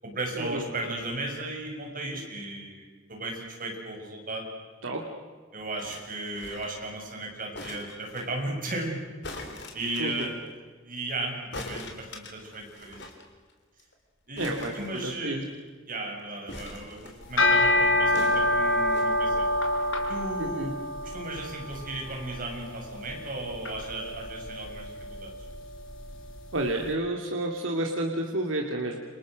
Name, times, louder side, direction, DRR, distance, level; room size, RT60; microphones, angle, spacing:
voice 1, 0.0-4.5 5.5-9.0 9.7-10.5 10.8-13.1 14.3-15.5 15.9-19.5 20.1-20.8 21.0-25.3, right 2 dB, 45° right, 1 dB, 6.9 m, -35 dB
sound 1, 5.8-6.8 7.5-8.3 9.2-10.3 11.5-13.2 13.5-13.6 13.8-13.9 14.4-15.5 16.5-17.4 18.1-19.1 19.8-19.9, left 2 dB, 60° left, 4.0 m, -42 dB
voice 2, 14.4-15.4 20.4-20.7 26.5-29.0, right 1 dB, 75° right, 1 dB, 2.5 m, -30 dB
sound 2, 17.2-26.6, left 1 dB, 80° left, 4.8 m, -27 dB
29.5 x 26.5 x 6.4 m, 1.5 s
head